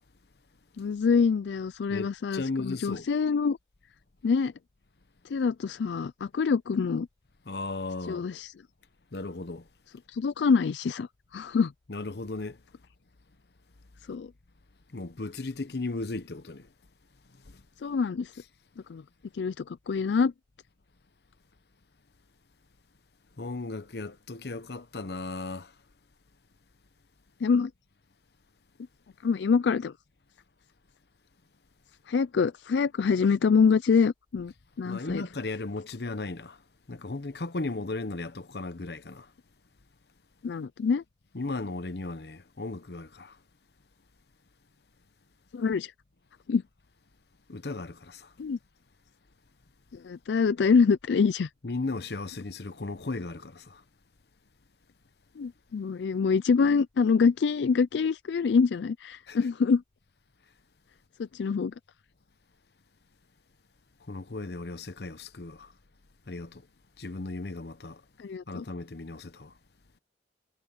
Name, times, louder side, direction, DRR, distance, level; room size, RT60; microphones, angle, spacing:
voice 1, 0.8-3.6 4.2-4.5 5.3-7.1 8.1-8.5 10.1-11.7 14.1-14.3 17.8-18.3 18.9-19.0 19.3-20.3 27.4-27.7 29.2-29.9 32.1-35.2 40.4-41.0 45.5-45.9 46.5-46.6 48.4-48.6 49.9-51.5 55.4-59.8 61.3-61.7 68.2-68.6, left 5 dB, 85° left, 0.4 m, -25 dB
voice 2, 1.9-3.1 7.5-8.3 9.1-9.7 11.9-12.6 14.9-16.7 17.4-17.6 23.4-25.7 34.8-36.6 36.9-39.3 41.3-43.4 47.5-48.3 51.6-53.8 59.3-59.4 64.1-65.7 66.3-66.7 67.0-68.0 68.5-69.5, left 3 dB, 70° left, 0.9 m, -36 dB
head